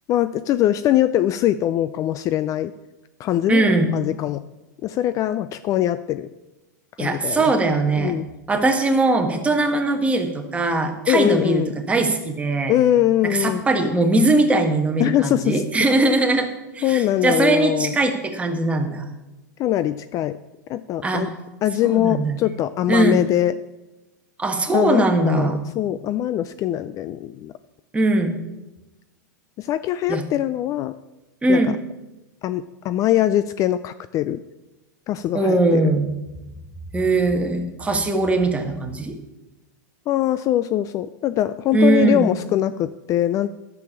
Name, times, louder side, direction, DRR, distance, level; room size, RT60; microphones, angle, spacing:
voice 1, 0.1-2.7 3.2-4.4 4.8-6.3 7.0-7.5 8.0-8.3 11.1-11.7 12.7-13.6 15.0-15.6 16.8-17.9 19.6-20.4 20.7-21.3 21.6-23.5 24.7-27.5 29.6-30.9 31.5-31.8 32.4-34.4 35.1-35.8 40.1-43.5, left 12 dB, 35° left, 13 dB, 0.4 m, -22 dB
voice 2, 3.5-3.9 7.0-8.2 8.5-12.7 13.3-19.1 21.0-21.3 21.8-22.5 22.9-23.2 24.4-25.6 27.9-28.4 30.1-30.2 31.4-31.8 35.3-36.1 36.9-39.1 41.7-42.3, right 2 dB, 10° right, 4 dB, 1.5 m, -20 dB
10.5 x 7.0 x 7.2 m, 1.0 s
hypercardioid pair, 115°, 10 cm